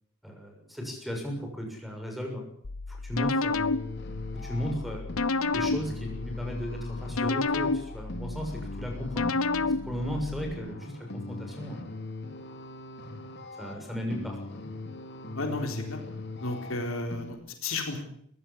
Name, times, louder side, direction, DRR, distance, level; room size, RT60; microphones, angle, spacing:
voice 1, 0.2-2.4 2.9-3.6 4.3-5.2 5.5-9.3 9.8-11.8 13.5-14.4, equal, ahead, 2 dB, 6.9 m, -36 dB
sound 1, 2.6-10.5, left 3 dB, 90° left, 0.9 m, -31 dB
sound 2, 3.5-17.3, left 2 dB, 55° left, 3.0 m, -40 dB
voice 2, 15.3-16.0 16.4-18.0, left 2 dB, 75° left, 4 dB, 4.1 m, -33 dB
21.5 x 16.0 x 8.6 m, 0.65 s
head